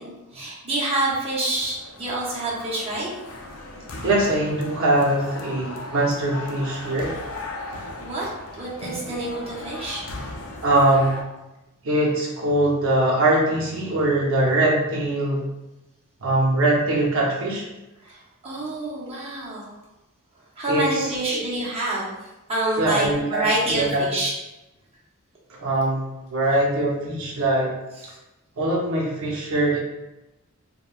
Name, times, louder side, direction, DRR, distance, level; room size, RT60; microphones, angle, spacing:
voice 1, 0.0-3.1 8.0-10.0 18.0-19.7 20.6-22.2 22.5-24.3, right 2 dB, 30° right, -6 dB, 0.7 m, -27 dB
sound 1, 1.5-11.2, left 2 dB, 85° left, 0.5 m, -37 dB
voice 2, 4.0-7.1 10.6-11.2 11.8-15.5 16.2-17.6 20.7-21.4 22.8-24.1 25.5-27.7 28.6-29.8, right 1 dB, 65° right, -4 dB, 0.6 m, -22 dB
3.1 x 2.2 x 2.3 m, 0.98 s
head